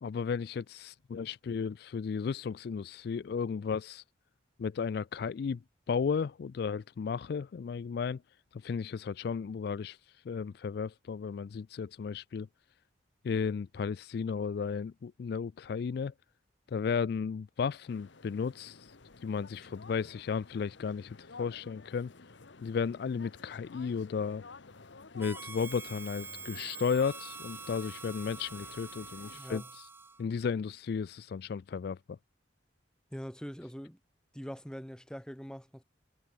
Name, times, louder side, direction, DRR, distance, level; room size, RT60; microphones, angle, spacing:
voice 1, 0.0-4.0 4.6-5.6 5.9-8.2 8.5-10.0 10.3-12.5 13.2-16.1 16.7-18.9 19.2-22.1 22.6-24.4 25.1-29.9 30.2-32.2, left 6 dB, 55° left, 0.3 m, -34 dB
sound 1, 17.9-29.4, left 3 dB, 80° left, 1.2 m, -53 dB
Harmonica, 25.2-30.2, right 4 dB, 10° right, 0.6 m, -45 dB
voice 2, 29.3-29.7 33.1-34.0 34.3-35.8, equal, 5° left, 2.3 m, -43 dB
head